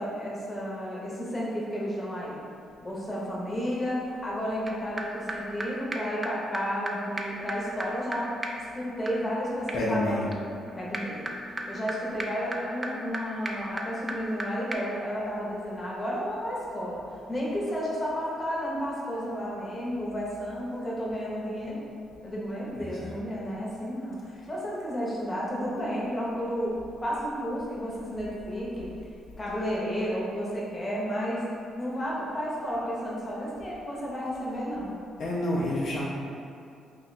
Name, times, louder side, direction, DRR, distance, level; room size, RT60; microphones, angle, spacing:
voice 1, 0.0-2.4 2.8-8.4 8.7-10.3 10.8-11.3 11.6-17.0 17.3-21.8 22.2-28.9 29.4-31.5 31.8-34.9, equal, 25° left, -6 dB, 0.8 m, -32 dB
sound 1, 4.7-4.8 5.0-5.1 5.3-5.4 5.6-5.7 5.9-6.0 6.2-6.3 6.5-6.6 6.9-7.0 7.2-14.4 14.7-14.8, right 1 dB, 25° right, 0.3 m, -37 dB
voice 2, 9.7-10.3 22.8-23.1 35.2-36.1, left 1 dB, 60° left, -5 dB, 0.4 m, -29 dB
2.7 x 2.2 x 4.0 m, 2.5 s
cardioid pair, 90°, 0 cm